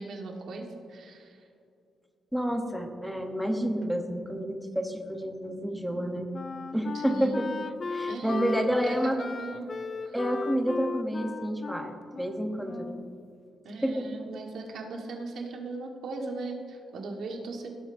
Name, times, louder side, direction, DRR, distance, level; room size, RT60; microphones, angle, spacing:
voice 1, 0.0-1.4 6.9-7.5 8.1-9.7 10.0-10.1 13.6-17.8, right 3 dB, 70° right, 2 dB, 1.4 m, -38 dB
voice 2, 2.3-6.3 6.7-7.5 7.9-9.2 10.1-13.0 13.8-14.1, equal, ahead, 3 dB, 0.8 m, -29 dB
Wind instrument woodwind instrument, 5.9-13.2, left 4 dB, 35° left, 0.4 m, -37 dB
17.0 x 8.1 x 2.6 m, 2.6 s
wide cardioid pair, 155°, 0 cm